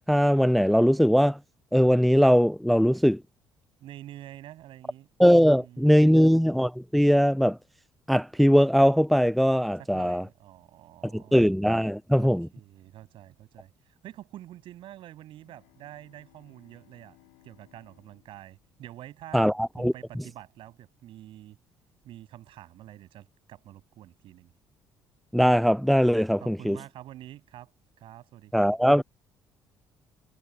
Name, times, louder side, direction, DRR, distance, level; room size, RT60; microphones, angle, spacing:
voice 1, 0.1-1.4 1.7-3.2 5.2-7.6 8.1-10.2 11.1-12.5 19.3-19.9 25.3-26.8 28.5-29.0, equal, ahead, 0.5 m, -20 dB
voice 2, 3.8-5.1 5.4-6.3 9.8-11.4 12.2-17.2 17.4-19.5 19.8-21.6 22.0-24.5 26.4-27.7 28.0-28.7, right 13 dB, 60° right, 7.6 m, -47 dB
Bowed string instrument, 15.3-19.8, left 40 dB or more, 75° left, 5.8 m, -63 dB
hypercardioid pair, 55°, 10 cm